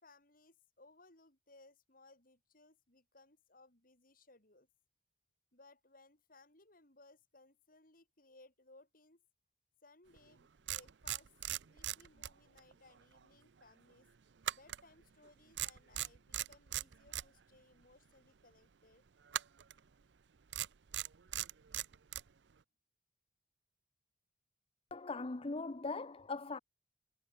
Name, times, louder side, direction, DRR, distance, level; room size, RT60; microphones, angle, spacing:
voice 1, 0.0-4.7 5.5-9.2 9.8-11.3 11.6-14.1 14.5-19.0, left 2 dB, 50° left, 6.2 m, -64 dB
sound 1, 10.2-10.3 10.7-12.7 13.0-13.2 14.4-15.3 15.6-17.3 19.3-19.8 20.5-22.3, right 12 dB, 70° right, 0.6 m, -39 dB
voice 2, 24.9-26.6, left 3 dB, 30° left, 0.7 m, -40 dB
head